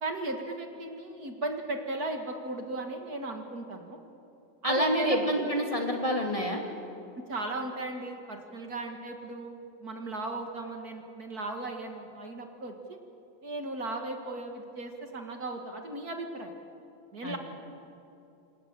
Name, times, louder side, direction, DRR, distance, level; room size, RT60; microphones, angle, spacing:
voice 1, 0.0-4.0 4.6-5.5 7.3-13.0 13.4-16.5 17.1-17.4, right 2 dB, 50° right, 4 dB, 2.4 m, -36 dB
voice 2, 4.6-6.6 17.2-17.4, equal, 15° left, 1 dB, 2.8 m, -27 dB
28.0 x 27.0 x 7.6 m, 2.8 s
omnidirectional pair, 2.1 m